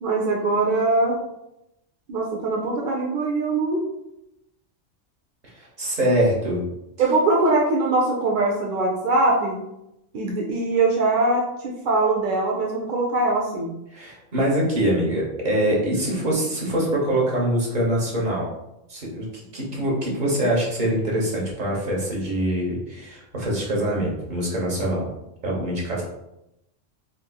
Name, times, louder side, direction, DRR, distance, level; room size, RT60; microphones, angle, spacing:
voice 1, 0.0-1.2 2.1-3.8 7.0-9.6 10.1-13.7, right 2 dB, 65° right, -1 dB, 0.5 m, -22 dB
voice 2, 5.5-6.6 13.9-18.5 18.9-25.1 25.4-26.0, right 1 dB, 40° right, -3 dB, 1.0 m, -24 dB
3.6 x 2.7 x 2.2 m, 0.86 s
omnidirectional pair, 1.3 m